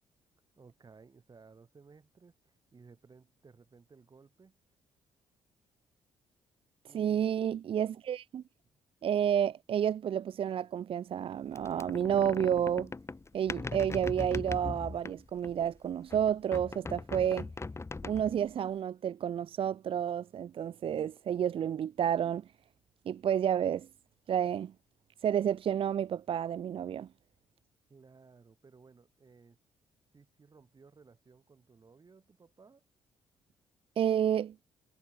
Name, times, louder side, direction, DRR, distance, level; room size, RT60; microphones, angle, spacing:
voice 1, 0.6-4.6 6.8-7.4 8.6-8.8 27.9-29.6 30.1-32.8, right 4 dB, 40° right, 6.6 m, -58 dB
voice 2, 6.9-8.4 9.0-12.9 13.3-17.5 18.0-22.4 23.1-23.9 24.3-24.7 25.2-27.1 34.0-34.5, right 9 dB, 55° right, 0.9 m, -30 dB
sound 1, 11.6-15.7 16.1-18.5, left 3 dB, 25° left, 1.8 m, -40 dB
hypercardioid pair, 50°, 11 cm